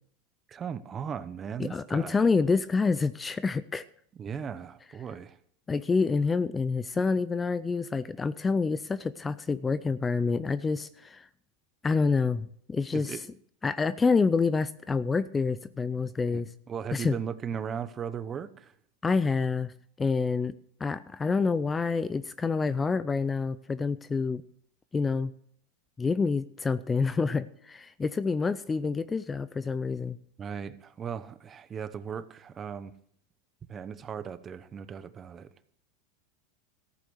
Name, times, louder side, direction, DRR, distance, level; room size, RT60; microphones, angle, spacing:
voice 1, 0.5-2.2 4.2-5.4 12.9-13.2 16.3-18.7 30.4-32.9 33.7-35.5, right 7 dB, 25° right, 0.9 m, -37 dB
voice 2, 1.6-3.8 5.7-11.3 11.8-13.2 13.6-16.5 16.9-17.2 19.0-19.7 20.0-20.5 20.8-24.4 24.9-25.3 26.0-30.2, left 4 dB, 15° left, 0.5 m, -27 dB
14.5 x 8.4 x 6.3 m
supercardioid pair, 115°, 0 cm